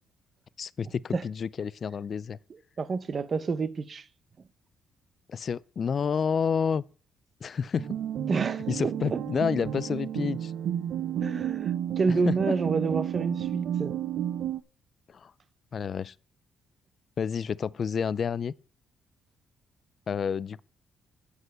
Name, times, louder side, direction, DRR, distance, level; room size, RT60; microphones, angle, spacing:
voice 1, 0.6-2.4 5.3-6.8 7.4-7.9 8.7-10.5 12.3-12.4 15.1-15.3 15.7-16.1 17.2-18.5 20.1-20.6, left 6 dB, 50° left, 0.4 m, -29 dB
voice 2, 2.8-4.1 8.3-9.2 11.2-14.0, right 4 dB, 40° right, 0.8 m, -29 dB
sound 1, 7.8-14.6, right 10 dB, 75° right, 0.6 m, -31 dB
8.1 x 5.3 x 7.7 m
cardioid pair, 90°, 0 cm